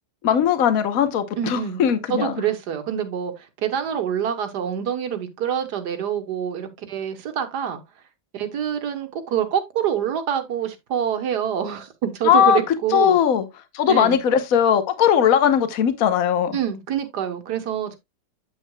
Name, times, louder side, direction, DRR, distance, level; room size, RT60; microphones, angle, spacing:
voice 1, 0.2-2.3 12.2-12.6 12.9-13.5 13.7-16.6, left 9 dB, 60° left, 1.4 m, -19 dB
voice 2, 1.4-1.8 2.1-7.8 8.3-13.2 13.9-14.2 16.5-18.0, right 9 dB, 75° right, 1.7 m, -26 dB
8.1 x 7.9 x 2.2 m
omnidirectional pair, 1.8 m